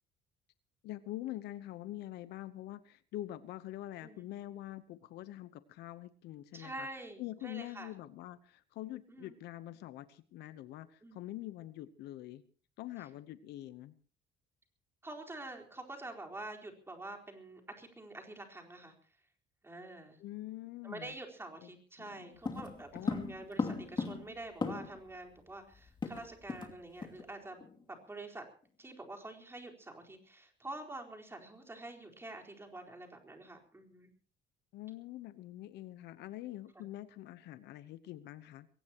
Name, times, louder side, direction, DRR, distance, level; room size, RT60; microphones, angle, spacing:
voice 1, 0.8-6.9 7.2-12.4 12.8-13.9 20.2-21.1 21.6-21.7 22.0-22.4 22.9-23.1 23.6-23.9 34.7-38.7, left 14 dB, 80° left, 13 dB, 1.0 m, -45 dB
voice 2, 6.5-7.9 9.1-9.3 11.0-11.2 15.0-18.9 19.6-20.2 20.8-27.6 27.9-28.4 28.8-34.1 36.8-36.9, right 2 dB, 15° right, 2 dB, 4.2 m, -47 dB
sound 1, 22.4-25.1 25.4-25.5 25.7-26.7 27.0-27.2 27.6-27.8, left 4 dB, 25° left, 2.6 m, -37 dB
22.5 x 17.5 x 3.0 m, 0.42 s
cardioid pair, 110°, 17 cm